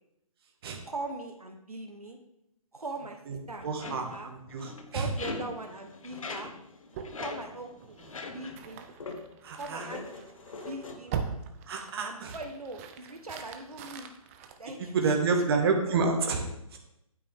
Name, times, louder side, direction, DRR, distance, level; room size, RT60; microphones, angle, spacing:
voice 1, 0.9-2.2 2.7-3.2 3.5-4.3 4.9-6.5 7.2-8.9 9.5-10.3 10.7-11.2 12.0-14.1 14.6-15.7, right 2 dB, 85° right, 3 dB, 1.3 m, -41 dB
voice 2, 3.3-5.1 9.4-9.9 11.7-12.3 14.8-16.8, right 4 dB, 40° right, 3 dB, 1.7 m, -29 dB
sound 1, 3.6-8.7 9.0-9.3 9.7-11.0, left 3 dB, 65° left, 1.3 m, -42 dB
sound 2, 6.9-15.4, right 7 dB, 25° right, 0.7 m, -42 dB
9.0 x 8.9 x 3.6 m, 0.80 s
figure-of-eight pair, 140°, 19 cm